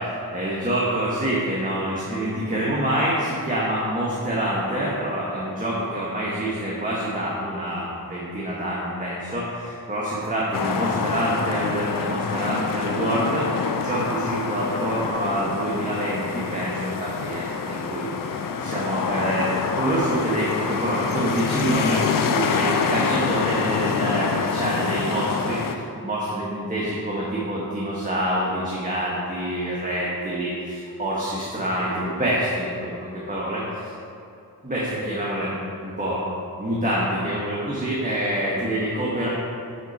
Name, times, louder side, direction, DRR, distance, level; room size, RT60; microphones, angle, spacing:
voice 1, 0.0-32.9 33.3-33.8 34.6-36.2 36.6-39.3, right 1 dB, 20° right, -6 dB, 1.4 m, -26 dB
sound 1, 10.5-25.7, left 5 dB, 60° left, 0.6 m, -26 dB
11.0 x 4.5 x 4.2 m, 2.6 s
cardioid pair, 70°, 37 cm